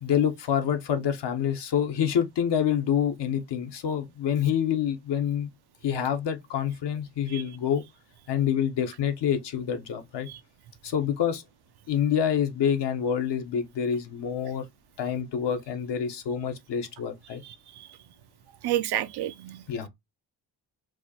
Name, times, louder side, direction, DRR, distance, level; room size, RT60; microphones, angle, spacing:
voice 1, 0.0-5.5 5.8-7.8 8.3-10.3 10.8-11.4 11.9-14.7 15.0-17.4 19.7-19.9, left 8 dB, 65° left, 0.9 m, -27 dB
voice 2, 18.6-19.9, right 12 dB, 60° right, 0.5 m, -30 dB
4.5 x 2.2 x 2.8 m
supercardioid pair, 60°, 46 cm